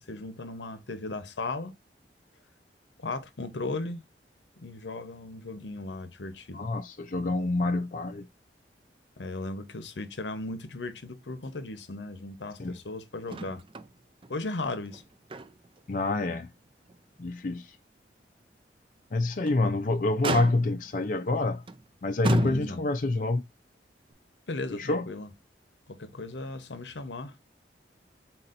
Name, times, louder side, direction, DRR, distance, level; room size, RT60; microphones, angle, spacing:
voice 1, 0.0-1.8 3.0-4.0 4.6-6.7 9.2-13.6 14.3-15.0 22.2-22.8 24.5-25.3 25.9-27.4, left 2 dB, 90° left, 0.9 m, -36 dB
voice 2, 6.5-8.3 12.6-12.7 15.9-16.5 17.2-17.8 19.1-21.6 22.0-23.4 24.7-25.1, left 2 dB, 50° left, 0.5 m, -27 dB
Motor vehicle (road), 13.3-13.9 14.2-14.3 14.9-15.8 16.2-16.4 16.9-17.0 19.2-19.7 20.2-20.9 21.7-21.8 22.2-23.0 24.1-24.2, right 2 dB, 30° right, 0.4 m, -32 dB
4.2 x 4.2 x 2.5 m
head